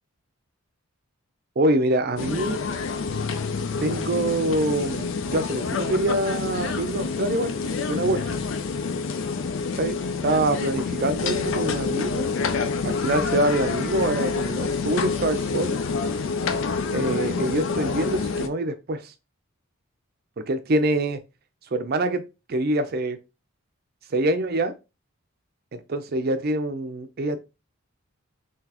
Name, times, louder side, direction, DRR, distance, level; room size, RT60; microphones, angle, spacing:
voice 1, 1.6-2.6 3.8-8.4 9.8-12.3 12.8-15.8 16.9-19.1 20.5-21.2 21.7-22.2 22.5-23.2 24.1-24.7 25.7-27.4, right 1 dB, 45° right, 0.5 m, -25 dB
sound 1, 2.2-18.5, left 4 dB, 60° left, 0.4 m, -27 dB
3.9 x 2.9 x 2.9 m
head